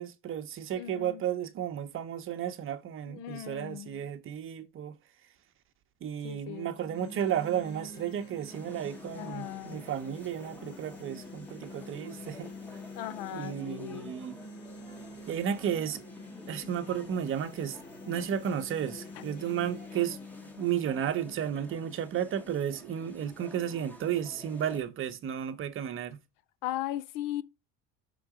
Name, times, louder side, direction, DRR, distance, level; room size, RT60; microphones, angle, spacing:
voice 1, 0.0-4.9 6.0-12.5 13.3-14.4 15.3-16.0 16.5-17.8 18.1-20.2 20.6-26.2, right 9 dB, 40° right, 0.9 m, -33 dB
voice 2, 0.7-1.2 3.1-4.0 6.2-6.7 9.1-9.9 12.9-14.2 26.6-27.4, left 13 dB, 75° left, 0.8 m, -38 dB
sound 1, 6.6-22.6, left 3 dB, 30° left, 1.6 m, -47 dB
sound 2, 8.5-24.8, equal, 5° left, 1.1 m, -50 dB
6.0 x 3.9 x 4.9 m
cardioid pair, 145°, 34 cm